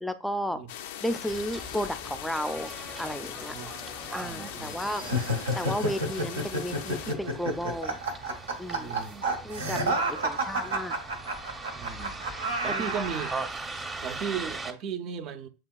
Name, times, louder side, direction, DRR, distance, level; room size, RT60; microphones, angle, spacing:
voice 1, 0.0-0.6 1.0-3.6 4.1-5.0 5.5-8.0 8.6-9.0 9.4-10.9 12.7-13.0, equal, ahead, 0.4 m, -33 dB
sound 1, 0.7-7.2, left 10 dB, 65° left, 0.4 m, -40 dB
Bus, 1.3-14.7, right 3 dB, 20° right, 0.8 m, -41 dB
voice 2, 4.2-5.2 8.8-9.3 11.7-13.3 14.0-15.5, right 7 dB, 50° right, 0.5 m, -36 dB
sound 2, 5.0-13.4, right 1 dB, 90° right, 0.8 m, -30 dB
7.3 x 2.8 x 2.3 m
hypercardioid pair, 90°, 0 cm